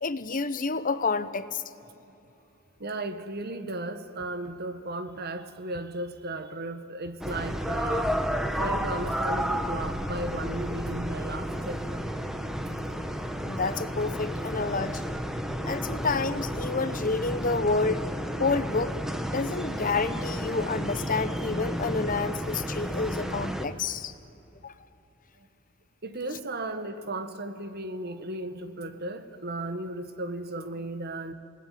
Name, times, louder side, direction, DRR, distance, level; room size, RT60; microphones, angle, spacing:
voice 1, 0.0-1.6 13.4-15.2 15.6-18.1 18.4-19.0 19.3-24.1 24.6-24.7, left 4 dB, 40° left, 0.9 m, -29 dB
voice 2, 2.8-8.2 8.6-12.0 25.4-25.5 26.0-31.3, right 2 dB, 50° right, 1.6 m, -35 dB
sound 1, 7.2-23.7, equal, ahead, 1.4 m, -32 dB
28.5 x 19.5 x 9.3 m
head